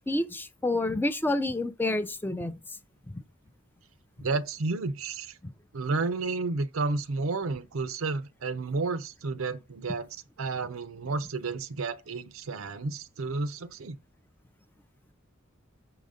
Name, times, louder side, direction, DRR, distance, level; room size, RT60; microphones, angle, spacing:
voice 1, 0.0-2.6, left 2 dB, 10° left, 0.4 m, -28 dB
voice 2, 4.2-5.4 5.7-10.1 10.4-14.0, right 3 dB, 85° right, 0.6 m, -31 dB
6.2 x 3.9 x 5.0 m
head